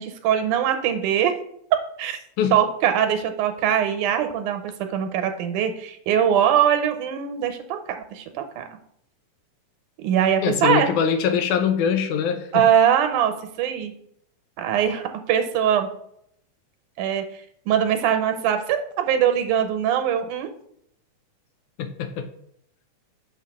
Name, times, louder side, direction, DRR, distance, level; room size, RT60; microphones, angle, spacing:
voice 1, 0.0-1.4 2.0-2.2 2.5-7.8 8.1-8.7 10.0-10.9 12.5-13.9 14.6-15.9 17.0-20.5, right 9 dB, 90° right, 7 dB, 2.3 m, -22 dB
voice 2, 10.4-12.6 21.8-22.3, left 7 dB, 90° left, 8 dB, 2.2 m, -23 dB
6.4 x 5.6 x 3.5 m, 0.70 s
omnidirectional pair, 3.5 m